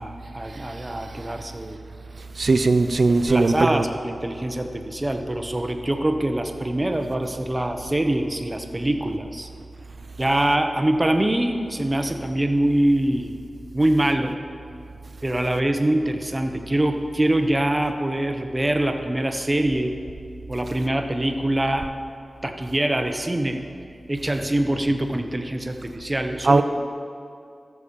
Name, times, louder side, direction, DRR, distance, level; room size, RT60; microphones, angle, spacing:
voice 1, 0.0-1.8 3.2-9.5 10.2-13.4 13.7-14.4 15.2-19.9 20.5-21.9 22.4-23.6 24.1-26.6, right 1 dB, 25° right, 1.0 m, -24 dB
voice 2, 2.4-3.8 26.4-26.6, right 3 dB, 60° right, 0.5 m, -18 dB
13.5 x 7.0 x 5.3 m
cardioid pair, 50°, 0 cm